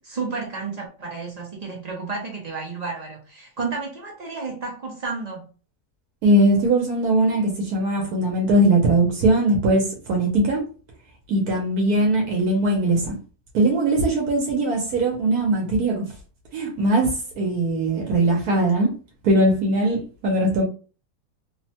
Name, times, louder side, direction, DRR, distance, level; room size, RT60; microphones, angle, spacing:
voice 1, 0.0-5.5, right 4 dB, 55° right, 0.4 m, -31 dB
voice 2, 6.2-10.7 11.3-13.2 13.5-16.1 16.5-18.9 19.2-20.6, right 1 dB, 80° right, 1.2 m, -20 dB
3.1 x 2.1 x 2.7 m
omnidirectional pair, 1.6 m